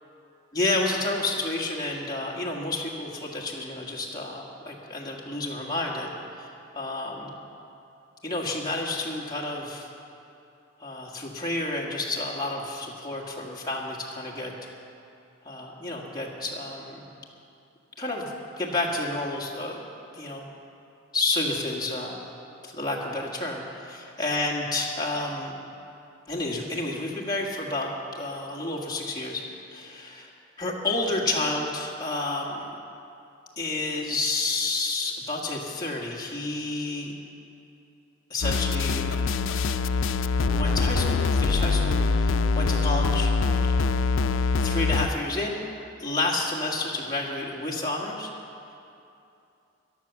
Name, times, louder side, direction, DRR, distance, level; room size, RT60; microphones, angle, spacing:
voice 1, 0.5-6.1 6.4-7.3 8.2-9.9 10.8-14.5 15.4-17.1 18.0-19.8 20.1-20.5 21.1-22.3 22.6-25.6 26.3-29.4 29.7-30.3 30.6-32.8 33.6-37.1 38.3-39.2 40.5-43.3 44.6-45.6 46.0-48.3, left 2 dB, 20° left, -3 dB, 1.7 m, -30 dB
sound 1, 38.4-45.1, left 4 dB, 70° left, 0.4 m, -24 dB
13.5 x 11.0 x 7.1 m, 2.7 s
head